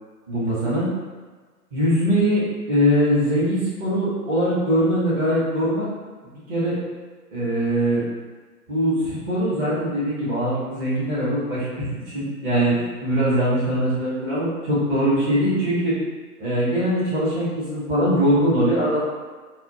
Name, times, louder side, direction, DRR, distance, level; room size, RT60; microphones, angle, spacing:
voice 1, 0.3-0.9 1.7-5.9 6.5-6.8 7.3-8.0 8.7-12.7 13.0-15.9 16.4-19.0, equal, 15° right, -9 dB, 1.0 m, -22 dB
4.1 x 2.3 x 2.8 m, 1.4 s
figure-of-eight pair, 120°, 48 cm